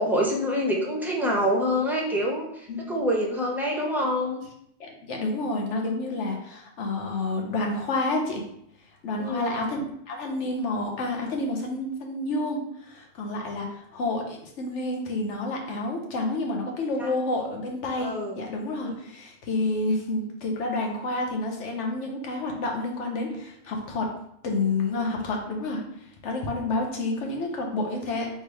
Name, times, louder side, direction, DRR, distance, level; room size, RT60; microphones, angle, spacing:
voice 1, 0.0-4.4 9.2-9.7 17.0-17.1 18.0-18.4 18.8-19.0, equal, ahead, -2 dB, 0.5 m, -26 dB
voice 2, 2.7-3.0 4.8-8.4 9.0-9.8 10.1-24.1 24.4-25.8 26.2-28.3, left 2 dB, 75° left, 1 dB, 1.1 m, -29 dB
3.3 x 2.8 x 4.7 m, 0.74 s
omnidirectional pair, 1.2 m